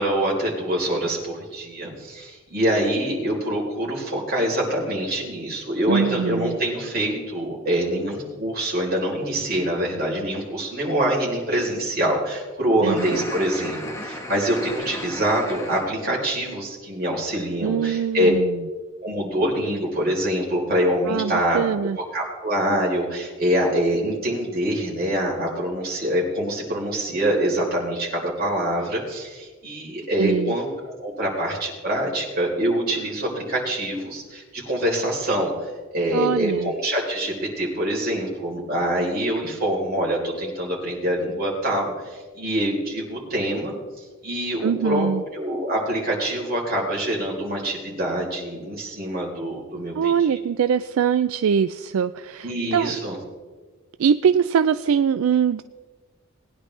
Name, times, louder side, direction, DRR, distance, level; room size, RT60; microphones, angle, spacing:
voice 1, 0.0-18.3 19.0-21.6 22.1-50.4 52.4-53.2, right 1 dB, 45° right, -3 dB, 4.0 m, -25 dB
voice 2, 5.9-6.6 12.8-13.3 17.6-18.6 21.1-22.0 30.2-30.5 36.1-36.7 44.6-45.2 50.0-53.0 54.0-55.6, right 7 dB, 75° right, 12 dB, 0.3 m, -22 dB
sound 1, 13.0-15.9, left 1 dB, 15° left, 1.3 m, -34 dB
20.0 x 10.0 x 3.3 m, 1.4 s
head